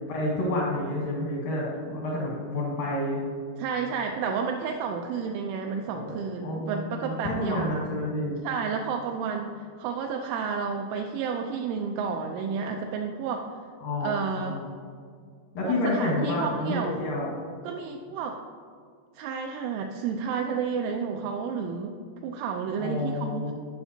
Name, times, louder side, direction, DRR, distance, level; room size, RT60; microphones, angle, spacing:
voice 1, 0.1-3.2 5.9-6.2 6.4-8.4 13.8-14.5 15.5-17.3 22.8-23.5, left 1 dB, 80° left, -4 dB, 2.0 m, -29 dB
voice 2, 3.6-7.6 8.4-13.6 14.0-14.6 15.6-17.0 17.6-18.4 19.2-21.9 22.2-23.5, right 6 dB, 85° right, 3 dB, 2.7 m, -31 dB
14.5 x 5.8 x 2.7 m, 2.1 s
omnidirectional pair, 5.8 m